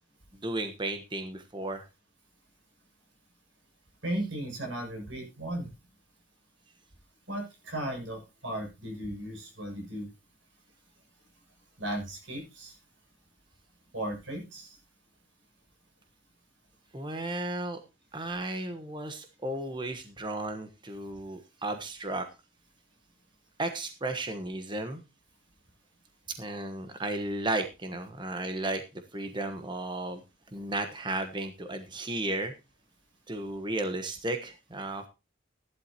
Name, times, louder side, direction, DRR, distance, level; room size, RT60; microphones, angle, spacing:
voice 1, 0.4-1.8 16.9-17.8 18.1-22.3 23.6-25.0 26.3-28.8 29.1-30.2 30.5-32.5 33.3-35.1, right 2 dB, 25° right, 6 dB, 1.2 m, -34 dB
voice 2, 4.0-5.7 7.3-10.1 11.8-12.8 13.9-14.8, right 1 dB, 80° right, 2 dB, 6.8 m, -36 dB
15.5 x 11.5 x 2.9 m, 0.27 s
head